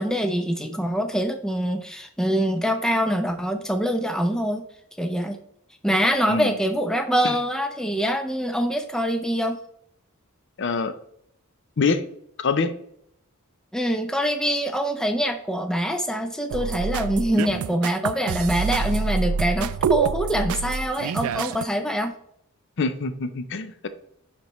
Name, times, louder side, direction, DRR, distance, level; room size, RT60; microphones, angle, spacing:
voice 1, 0.0-4.6 5.0-5.4 5.8-9.6 13.7-22.1, equal, 5° left, 6 dB, 0.6 m, -24 dB
voice 2, 10.6-10.9 11.8-12.0 12.4-12.7 22.8-23.9, left 4 dB, 55° left, 11 dB, 0.5 m, -25 dB
sound 1, 16.5-21.6, right 6 dB, 75° right, 0.3 m, -26 dB
10.5 x 4.4 x 3.1 m, 0.70 s
head